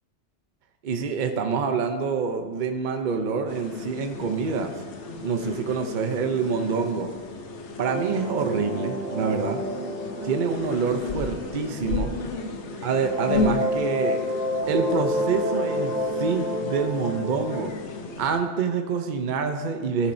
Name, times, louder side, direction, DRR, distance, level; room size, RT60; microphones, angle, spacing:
voice 1, 0.8-4.8 5.2-7.1 7.8-9.6 10.2-12.1 12.8-14.2 14.7-17.7 18.2-20.1, right 5 dB, 50° right, 6 dB, 0.8 m, -26 dB
sound 1, 3.5-18.4, left 3 dB, 80° left, 1.1 m, -34 dB
sound 2, 7.9-12.7 13.1-17.6, equal, 90° right, 2.5 m, -29 dB
15.0 x 7.2 x 2.7 m, 1.5 s
omnidirectional pair, 1.2 m